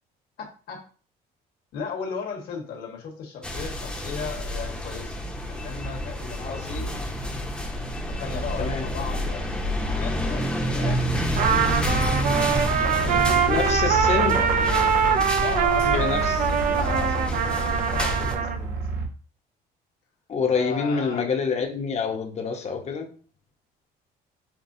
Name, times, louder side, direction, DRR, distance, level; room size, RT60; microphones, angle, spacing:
voice 1, 0.4-0.9 1.7-5.1 5.5-6.9 8.0-11.6 12.6-16.4 16.6-19.1 20.5-21.3, left 5 dB, 65° left, 1.5 m, -36 dB
sound 1, 3.4-18.3, equal, 5° left, 0.8 m, -29 dB
voice 2, 6.4-6.8 8.6-8.8 13.5-14.4 15.8-16.4 20.3-23.1, left 5 dB, 40° left, 0.9 m, -27 dB
sound 2, 11.0-19.1, right 4 dB, 85° right, 0.9 m, -32 dB
Trumpet, 11.4-18.6, right 7 dB, 50° right, 0.4 m, -23 dB
5.8 x 2.3 x 2.7 m
cardioid pair, 110°, 17 cm